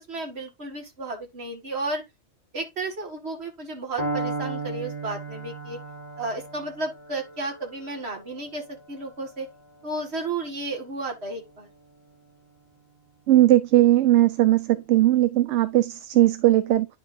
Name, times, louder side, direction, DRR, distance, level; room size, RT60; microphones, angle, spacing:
voice 1, 0.1-2.0 2.5-5.8 6.2-9.5 9.8-11.7, right 2 dB, 65° right, 2.2 m, -33 dB
Piano, 4.0-11.9, right 3 dB, 20° right, 3.1 m, -36 dB
voice 2, 13.3-16.9, right 15 dB, 80° right, 0.9 m, -19 dB
9.8 x 5.5 x 2.6 m
omnidirectional pair, 1.2 m